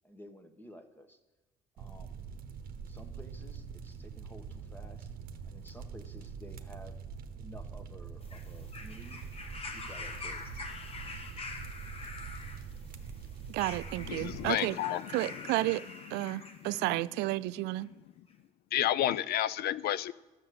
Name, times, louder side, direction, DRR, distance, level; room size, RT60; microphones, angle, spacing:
voice 1, 0.0-1.2 1.8-2.2 2.9-5.1 5.4-7.0 7.4-9.2 9.7-10.5, equal, 10° left, 1.2 m, -52 dB
sound 1, 1.8-14.5, right 6 dB, 60° right, 0.9 m, -44 dB
sound 2, 8.2-16.9 17.8-17.9, left 3 dB, 35° left, 1.5 m, -45 dB
voice 2, 13.5-14.8 15.1-15.8 16.1-17.9, right 18 dB, 90° right, 0.4 m, -32 dB
voice 3, 14.0-15.5 16.2-16.7 18.7-20.1, left 12 dB, 70° left, 0.5 m, -32 dB
12.0 x 6.7 x 7.6 m
cardioid pair, 110°, 17 cm